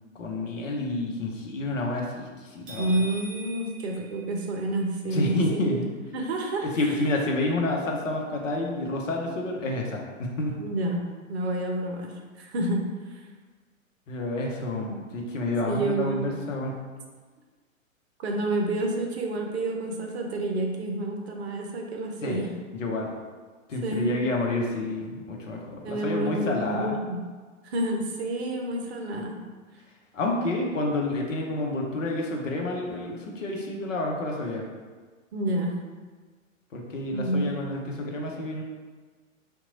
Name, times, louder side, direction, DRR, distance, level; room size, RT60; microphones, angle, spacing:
voice 1, 0.2-3.0 5.1-5.9 6.6-10.6 14.1-16.8 22.2-22.4 22.7-23.1 23.7-27.0 30.1-34.7 36.7-38.6, left 2 dB, 65° left, 0 dB, 0.8 m, -29 dB
sound 1, 2.7-4.8, right 1 dB, 20° right, 1.0 m, -43 dB
voice 2, 2.7-5.9 6.1-6.7 10.6-13.2 14.8-15.0 15.7-16.3 18.2-22.5 23.8-24.1 25.8-27.2 27.6-29.4 35.3-35.7 37.1-37.5, right 1 dB, 50° right, 1 dB, 0.6 m, -29 dB
2.9 x 2.3 x 3.8 m, 1.4 s
figure-of-eight pair, 110°, 41 cm